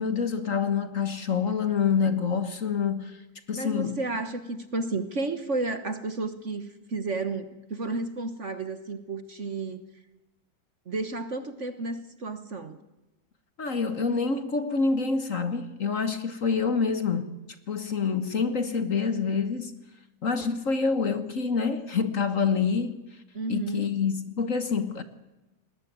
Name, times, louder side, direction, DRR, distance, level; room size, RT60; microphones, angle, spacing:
voice 1, 0.0-3.2 3.5-4.0 13.6-17.3 17.7-19.7 20.2-23.0 23.5-25.0, left 5 dB, 45° left, 1.5 m, -27 dB
voice 2, 3.5-9.8 10.8-12.8 23.3-23.9, right 3 dB, 40° right, 1.5 m, -32 dB
21.0 x 19.5 x 9.4 m
omnidirectional pair, 2.1 m